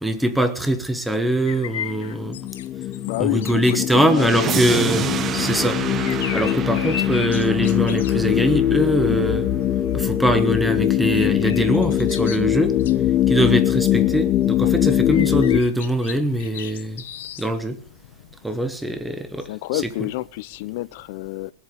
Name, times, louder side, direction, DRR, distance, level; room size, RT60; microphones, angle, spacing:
voice 1, 0.0-2.4 3.2-5.8 6.1-9.5 9.9-12.8 13.3-17.0 17.4-17.8 18.4-19.8, right 1 dB, 5° right, 1.2 m, -22 dB
sound 1, 1.0-19.0, left 11 dB, 75° left, 1.1 m, -39 dB
sound 2, 1.8-15.6, left 12 dB, 25° left, 0.9 m, -22 dB
voice 2, 3.1-4.8 19.5-21.5, left 18 dB, 45° left, 0.6 m, -28 dB
sound 3, 4.1-9.0, right 9 dB, 20° right, 0.6 m, -29 dB
21.5 x 8.3 x 4.8 m
supercardioid pair, 165°, 0 cm